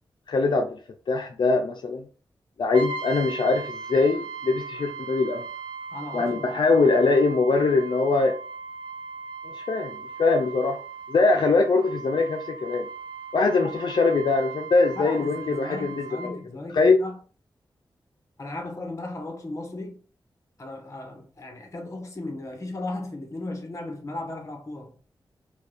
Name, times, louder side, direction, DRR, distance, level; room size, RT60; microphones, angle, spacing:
voice 1, 0.3-0.8 1.1-2.1 2.6-5.5 6.1-8.4 9.4-10.8 11.1-12.9 13.3-16.4 16.7-17.0, left 3 dB, 65° left, 0.5 m, -22 dB
Brass instrument, 2.7-16.4, right 4 dB, 85° right, 0.6 m, -38 dB
voice 2, 5.9-6.6 13.6-13.7 14.9-17.2 18.4-20.0 20.6-25.0, left 2 dB, 35° left, 1.0 m, -36 dB
4.5 x 2.3 x 3.3 m
wide cardioid pair, 120°, 8 cm